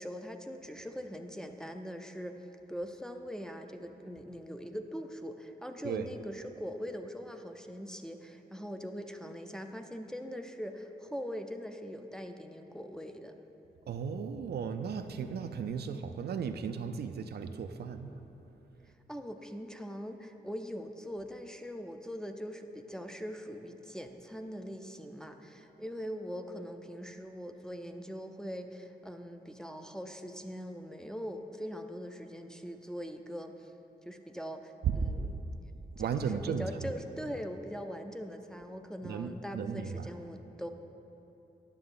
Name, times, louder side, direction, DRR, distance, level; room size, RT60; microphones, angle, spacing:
voice 1, 0.0-13.4 19.1-33.7 34.0-35.4 36.0-40.7, equal, 5° left, 5 dB, 0.4 m, -42 dB
voice 2, 13.9-18.1 34.8-35.2 36.0-36.8 39.0-40.1, right 6 dB, 80° right, 8 dB, 0.4 m, -35 dB
9.8 x 6.8 x 3.7 m, 3.0 s
cardioid pair, 85°, 16 cm